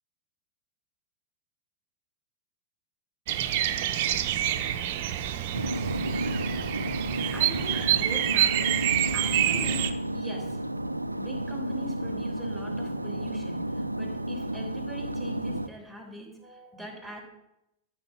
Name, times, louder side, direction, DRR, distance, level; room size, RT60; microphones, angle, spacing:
Bird vocalization bird call bird song, 3.3-9.9, right 11 dB, 50° right, 0.8 m, -27 dB
sound 1, 5.5-15.7, right 1 dB, 85° right, 0.4 m, -32 dB
voice 1, 7.3-8.8 9.1-10.6 11.1-17.2, left 1 dB, 5° left, 0 dB, 3.2 m, -42 dB
13.5 x 5.8 x 5.3 m, 0.86 s
figure-of-eight pair, 90°, 0 cm